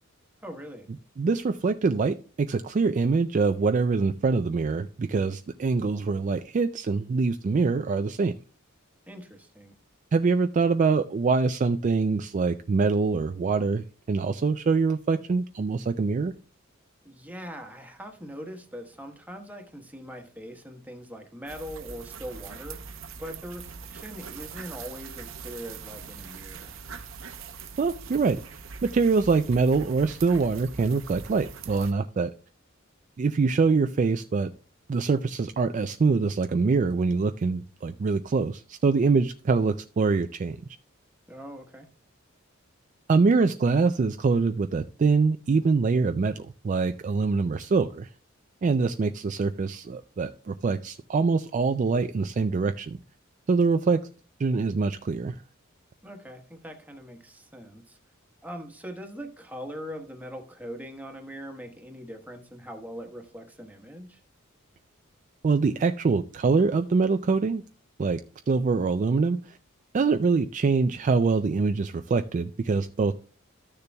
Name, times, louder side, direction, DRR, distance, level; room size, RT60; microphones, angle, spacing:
voice 1, 0.4-0.9 9.1-9.7 17.0-22.8 23.2-23.6 23.9-26.7 41.3-41.9 56.0-58.0 58.4-64.2, equal, 10° right, 4 dB, 1.2 m, -41 dB
voice 2, 1.2-8.3 10.1-16.3 27.8-28.4 28.9-32.3 33.2-34.5 34.9-40.6 43.1-48.1 48.6-53.0 53.5-54.0 54.4-55.4 65.4-67.6 68.0-68.2 68.5-69.4 69.9-73.1, right 4 dB, 35° right, 8 dB, 0.3 m, -24 dB
sound 1, 21.5-31.9, right 5 dB, 65° right, 0.8 m, -42 dB
13.5 x 6.7 x 2.3 m, 0.38 s
head